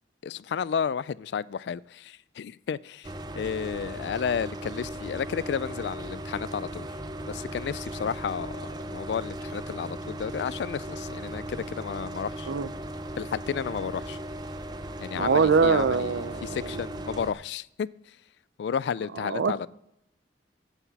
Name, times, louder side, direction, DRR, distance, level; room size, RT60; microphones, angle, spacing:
voice 1, 0.2-6.9 7.3-12.5 13.2-14.2 15.0-17.9 18.6-19.7, left 7 dB, 70° left, 0.3 m, -32 dB
sound 1, 3.0-17.3, right 1 dB, 25° right, 0.5 m, -37 dB
voice 2, 15.2-16.8 19.2-19.7, right 5 dB, 85° right, 0.5 m, -24 dB
9.8 x 8.1 x 4.1 m
head